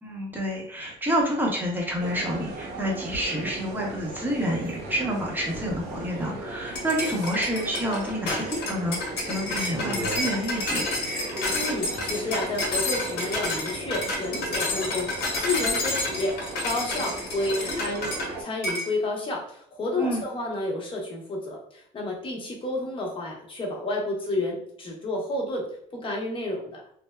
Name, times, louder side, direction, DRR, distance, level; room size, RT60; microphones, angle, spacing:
voice 1, 0.0-10.9 20.0-20.2, equal, 10° right, -1 dB, 0.8 m, -28 dB
sound 1, 2.0-18.4, right 2 dB, 80° right, 0.7 m, -37 dB
sound 2, 6.7-18.3 18.6-18.9, left 2 dB, 75° left, 0.9 m, -30 dB
voice 2, 11.5-16.4 16.6-26.8, left 2 dB, 30° left, -1 dB, 0.9 m, -30 dB
3.2 x 2.1 x 2.2 m, 0.68 s
cardioid pair, 110°, 17 cm